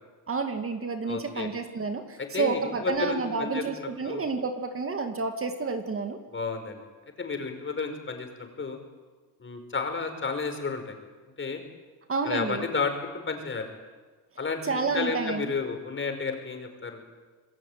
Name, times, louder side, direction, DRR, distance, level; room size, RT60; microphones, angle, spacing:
voice 1, 0.3-6.2 12.1-12.7 14.6-15.6, right 4 dB, 35° right, 6 dB, 2.3 m, -30 dB
voice 2, 1.0-1.5 2.3-4.2 6.3-6.8 7.2-8.8 9.4-10.9 11.4-11.6 12.2-12.9 13.3-13.7 14.4-17.0, left 4 dB, 30° left, 5 dB, 5.4 m, -32 dB
27.5 x 21.5 x 9.5 m, 1.4 s
cardioid pair, 115°, 40 cm